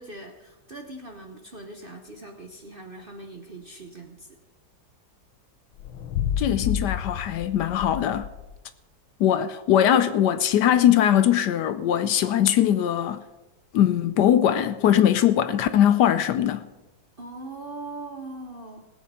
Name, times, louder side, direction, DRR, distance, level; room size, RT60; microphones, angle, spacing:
voice 1, 0.0-4.4 17.2-18.9, right 2 dB, 40° right, 0.8 m, -41 dB
sound 1, 5.7-8.6, left 9 dB, 85° left, 1.6 m, -30 dB
voice 2, 6.4-8.3 9.2-13.2 13.7-16.7, left 10 dB, 70° left, 1.1 m, -21 dB
19.0 x 8.3 x 5.5 m
omnidirectional pair, 2.0 m